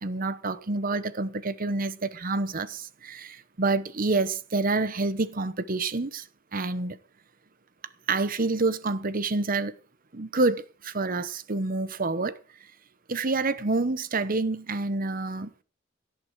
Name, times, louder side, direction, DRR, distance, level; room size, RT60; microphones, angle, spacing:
voice 1, 0.0-6.3 6.5-7.0 8.1-9.7 10.1-12.4 13.1-15.5, right 3 dB, 45° right, 1.0 m, -28 dB
17.5 x 11.5 x 4.6 m
head